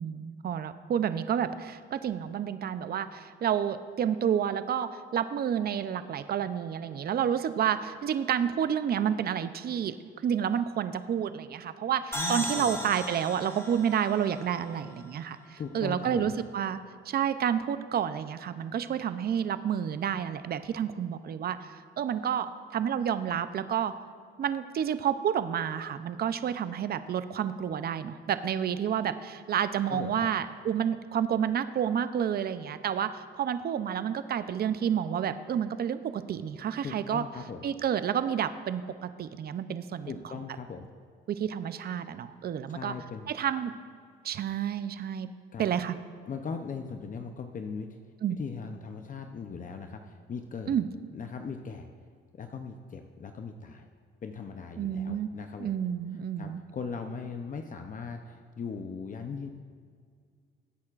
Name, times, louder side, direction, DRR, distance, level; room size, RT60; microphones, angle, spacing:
voice 1, 0.0-9.9 10.2-21.7 22.0-23.9 24.4-37.2 37.6-40.1 41.3-42.9 43.3-43.7 44.2-45.3 45.6-45.9 48.2-48.4 50.7-50.9 54.8-55.3 55.6-56.6, right 8 dB, 50° right, 12 dB, 0.6 m, -30 dB
voice 2, 12.1-12.8 15.6-16.3 29.9-30.3 36.8-37.7 40.0-40.9 42.7-43.3 45.5-45.7 46.3-48.0 48.3-50.8 51.1-51.9 52.3-53.9 54.2-55.7 56.4-59.5, left 5 dB, 40° left, 5 dB, 0.7 m, -39 dB
sound 1, 12.1-15.7, equal, 15° left, 1.8 m, -37 dB
19.0 x 8.6 x 2.5 m, 2.1 s
cardioid pair, 90°, 20 cm